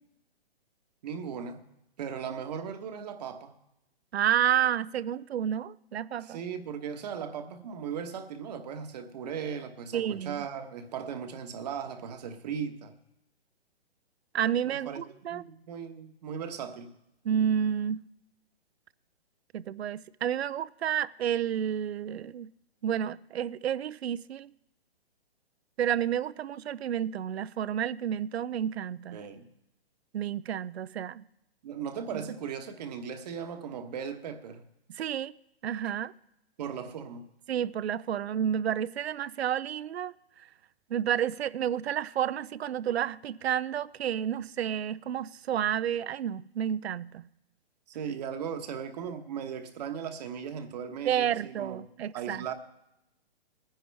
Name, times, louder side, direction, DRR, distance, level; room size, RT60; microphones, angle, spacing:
voice 1, 1.0-1.6 2.0-3.5 6.2-12.9 14.6-15.0 15.3-16.9 29.1-29.5 31.6-34.7 36.6-37.2 47.9-51.8 52.1-52.5, right 7 dB, 40° right, 1.2 m, -37 dB
voice 2, 4.1-6.4 9.9-10.5 14.3-15.4 17.2-18.1 19.5-22.5 22.8-24.5 25.8-29.2 30.1-31.2 32.1-32.2 34.9-35.3 35.6-36.1 37.5-40.1 40.9-47.2 51.1-52.5, right 9 dB, 80° right, 0.6 m, -30 dB
19.5 x 10.0 x 3.4 m
hypercardioid pair, 160°, 31 cm